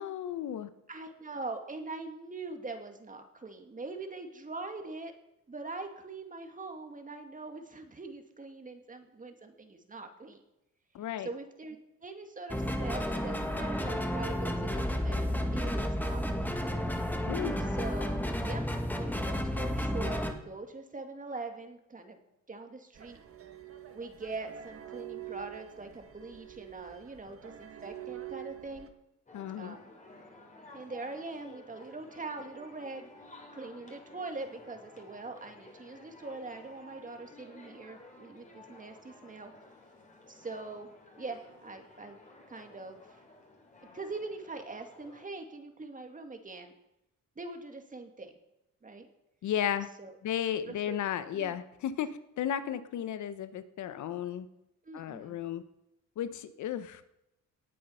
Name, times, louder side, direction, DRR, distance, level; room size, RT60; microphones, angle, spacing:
voice 1, 0.0-0.7 10.9-11.3 17.3-17.6 29.3-29.8 49.4-49.9 50.2-52.1 52.4-54.5 54.9-55.6 56.2-57.1, left 10 dB, 70° left, 13 dB, 1.0 m, -34 dB
voice 2, 0.9-5.1 5.5-10.4 11.2-11.8 12.0-15.3 15.5-16.5 17.6-18.2 18.4-18.6 19.0-22.2 22.5-23.2 23.9-28.9 29.6-29.9 30.7-33.1 33.5-39.5 40.3-40.9 41.2-42.2 42.5-43.2 43.9-46.7 47.4-48.3 48.8-49.1 50.0-50.2 50.7-51.0 51.3-51.5 54.8-55.4, right 3 dB, 25° right, 5 dB, 2.0 m, -42 dB
sound 1, 12.5-20.3, equal, 5° left, 1.6 m, -32 dB
sound 2, 22.9-28.9, right 13 dB, 50° right, 1.5 m, -46 dB
sound 3, 29.3-45.2, left 2 dB, 25° left, 3.4 m, -54 dB
18.0 x 7.7 x 5.7 m, 0.85 s
cardioid pair, 90°, 30 cm